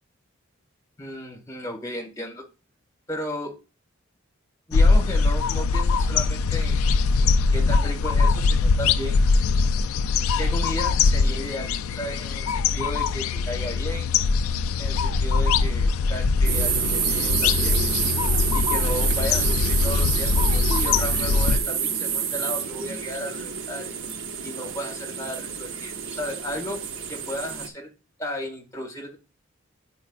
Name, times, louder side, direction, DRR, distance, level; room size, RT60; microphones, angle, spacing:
voice 1, 1.0-2.4 3.1-3.6 4.7-6.9 7.2-9.2 10.4-14.1 14.8-17.8 18.5-24.0 24.4-26.8 27.1-27.9 28.2-29.2, equal, 15° left, 2 dB, 1.6 m, -34 dB
sound 1, 4.7-21.6, left 4 dB, 80° left, 0.3 m, -22 dB
sound 2, 16.5-27.7, right 7 dB, 65° right, 0.7 m, -28 dB
9.7 x 4.5 x 2.3 m, 0.31 s
head